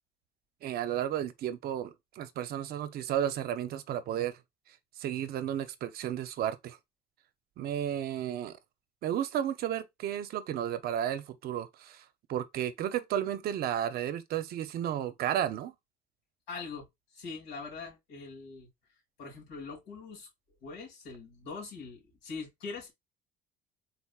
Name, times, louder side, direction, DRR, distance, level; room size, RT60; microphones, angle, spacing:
voice 1, 0.6-4.4 5.0-6.8 7.6-8.6 9.0-15.7, right 10 dB, 55° right, 0.6 m, -33 dB
voice 2, 16.5-16.9 17.1-18.7 19.2-20.3 20.6-22.9, left 4 dB, 90° left, 2.8 m, -42 dB
4.4 x 4.0 x 2.3 m
cardioid pair, 130°, 19 cm